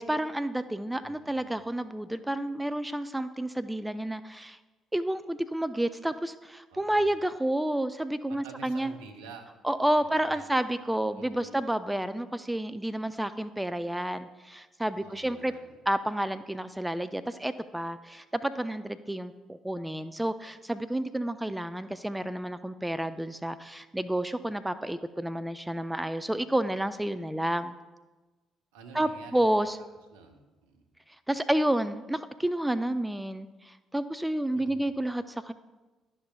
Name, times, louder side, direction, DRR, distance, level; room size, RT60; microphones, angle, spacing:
voice 1, 0.0-4.6 4.9-8.9 9.6-15.5 15.9-27.8 28.9-29.8 31.3-35.5, right 1 dB, 10° right, 12 dB, 0.4 m, -30 dB
voice 2, 1.0-1.6 6.7-7.0 8.3-9.5 9.9-10.5 11.2-11.6 15.0-15.7 28.7-29.4 30.1-30.9 34.5-35.0, right 4 dB, 80° right, 4 dB, 0.8 m, -49 dB
11.5 x 5.6 x 2.3 m, 1.2 s
hypercardioid pair, 50°, 0 cm